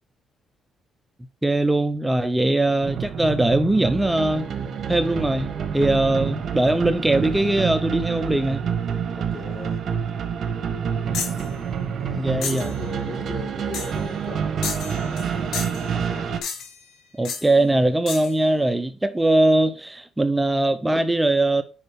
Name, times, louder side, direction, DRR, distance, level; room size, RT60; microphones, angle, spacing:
voice 1, 1.4-4.5 4.9-8.6 12.2-12.7 17.1-21.6, right 2 dB, 10° right, 0.7 m, -21 dB
voice 2, 2.4-2.8 9.1-9.9 12.0-15.5 15.9-16.3, left 2 dB, 25° left, 4.0 m, -39 dB
sound 1, 2.8-16.4, right 7 dB, 55° right, 1.3 m, -28 dB
sound 2, 11.1-11.4 12.4-12.7 13.7-14.0 14.6-15.3 15.5-15.9 16.4-16.8 17.2-17.5 18.1-18.3, left 6 dB, 80° left, 2.0 m, -31 dB
9.3 x 5.4 x 3.6 m
cardioid pair, 90°, 0 cm